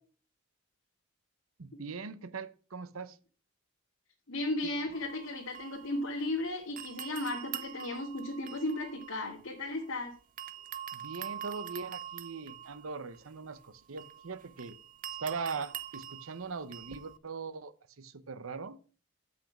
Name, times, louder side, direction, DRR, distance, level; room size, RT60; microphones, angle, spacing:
voice 1, 1.6-3.2 10.9-14.7 15.2-18.8, right 4 dB, 75° right, 0.8 m, -40 dB
voice 2, 4.3-10.2, left 2 dB, 80° left, 2.1 m, -35 dB
sound 1, 4.9-6.4 6.8-10.0 10.4-17.2, right 10 dB, 40° right, 0.6 m, -45 dB
7.8 x 6.0 x 5.9 m
head